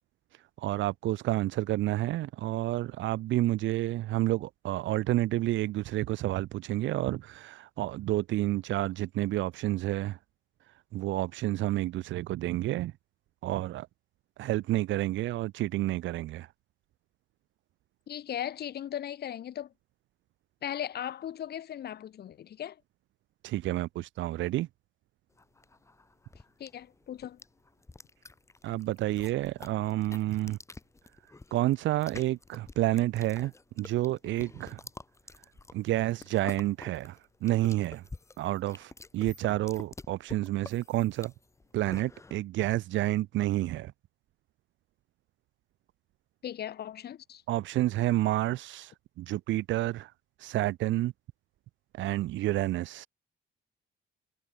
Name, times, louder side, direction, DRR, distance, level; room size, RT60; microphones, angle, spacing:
voice 1, 0.3-10.2 10.9-12.9 13.4-13.9 14.4-16.5 23.4-24.7 28.6-30.6 31.5-34.8 35.7-38.0 38.4-41.3 41.7-43.9 47.5-50.1 50.4-51.1 51.9-53.1, right 15 dB, 75° right, 0.5 m, -29 dB
voice 2, 18.1-19.7 20.6-22.8 26.6-27.4 46.4-47.4, left 10 dB, 55° left, 0.7 m, -37 dB
sound 1, 25.4-42.4, left 3 dB, 15° left, 0.7 m, -49 dB
cardioid pair, 90°, 20 cm